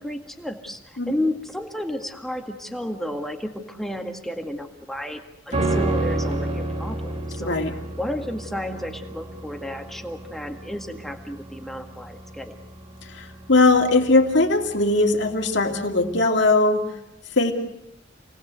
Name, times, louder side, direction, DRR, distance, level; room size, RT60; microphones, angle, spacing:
voice 1, 0.0-7.6 8.0-12.6, left 1 dB, ahead, 3 dB, 1.9 m, -32 dB
sound 1, 5.5-14.9 15.2-15.3, right 2 dB, 40° right, 3.8 m, -30 dB
voice 2, 7.4-7.7 13.0-16.9 17.4-17.5, left 2 dB, 65° left, 3 dB, 2.7 m, -20 dB
28.5 x 19.0 x 8.1 m, 0.84 s
head